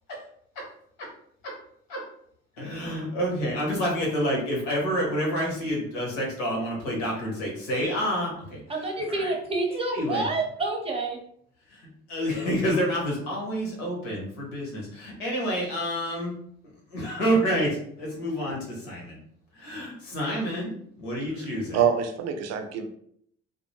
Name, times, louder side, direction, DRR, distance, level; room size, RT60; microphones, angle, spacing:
voice 1, 2.6-9.3 9.7-10.3 11.7-11.8 12.1-16.3 16.9-19.2 19.5-20.7 21.0-21.8, equal, 70° left, -2 dB, 1.0 m, -28 dB
voice 2, 8.7-11.2, right 3 dB, 15° right, 1 dB, 0.7 m, -28 dB
voice 3, 21.3-22.9, right 8 dB, 50° right, 5 dB, 0.5 m, -26 dB
2.2 x 2.0 x 3.0 m, 0.66 s
figure-of-eight pair, 45°, 32 cm